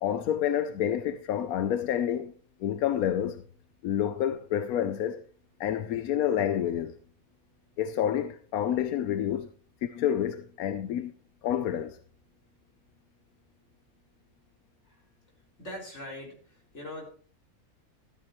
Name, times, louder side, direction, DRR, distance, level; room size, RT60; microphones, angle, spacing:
voice 1, 0.0-2.3 2.6-3.4 3.8-5.2 5.6-6.9 7.8-9.5 9.8-11.1 11.4-12.0, left 10 dB, 90° left, 1.2 m, -28 dB
voice 2, 15.6-17.0, left 1 dB, 50° left, 4.5 m, -42 dB
14.0 x 12.5 x 3.1 m
omnidirectional pair, 1.5 m